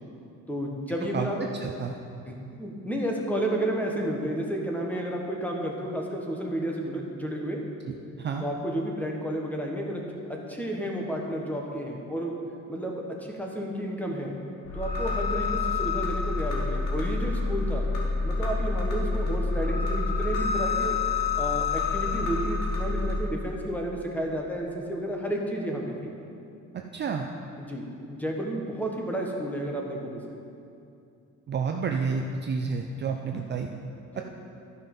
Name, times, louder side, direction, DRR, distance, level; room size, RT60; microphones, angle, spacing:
voice 1, 0.5-1.4 2.3-7.6 8.4-10.0 10.3-12.3 12.7-14.3 14.7-17.9 18.2-21.0 21.3-26.1 27.6-30.4 34.1-34.2, right 1 dB, 5° left, 0 dB, 1.2 m, -31 dB
voice 2, 1.1-1.9 8.2-8.4 26.9-27.3 31.5-33.7 34.2-34.3, right 5 dB, 35° right, 3 dB, 0.5 m, -30 dB
sound 1, 14.7-23.2, left 4 dB, 90° left, 2.1 m, -28 dB
12.5 x 5.5 x 5.4 m, 2.6 s
cardioid pair, 130°, 31 cm